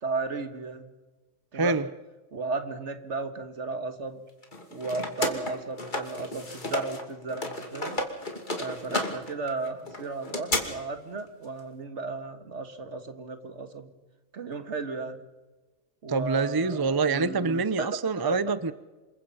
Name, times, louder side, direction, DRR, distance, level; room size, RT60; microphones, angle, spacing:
voice 1, 0.0-0.9 1.5-1.8 2.3-4.2 4.7-8.0 8.6-13.9 14.3-15.2 16.0-17.9 18.2-18.4, right 3 dB, 65° right, 2.0 m, -35 dB
voice 2, 1.5-1.9 16.1-18.7, right 4 dB, 25° right, 0.6 m, -26 dB
sound 1, 4.4-7.0 7.3-10.6, left 2 dB, 40° left, 2.8 m, -32 dB
27.0 x 23.0 x 5.6 m
omnidirectional pair, 1.3 m